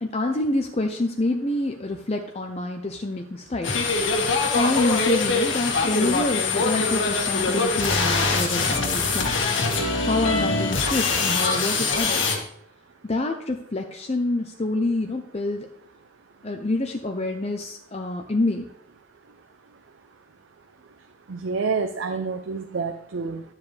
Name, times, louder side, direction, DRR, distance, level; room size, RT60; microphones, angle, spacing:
voice 1, 0.0-3.7 4.5-9.3 9.8-12.4 13.0-15.7 16.4-18.7, left 2 dB, 35° left, 3 dB, 0.6 m, -27 dB
sound 1, 3.6-12.4, left 4 dB, 80° left, 1.7 m, -23 dB
voice 2, 21.3-23.4, right 4 dB, 80° right, 7 dB, 0.6 m, -28 dB
11.5 x 7.3 x 3.3 m, 0.69 s
head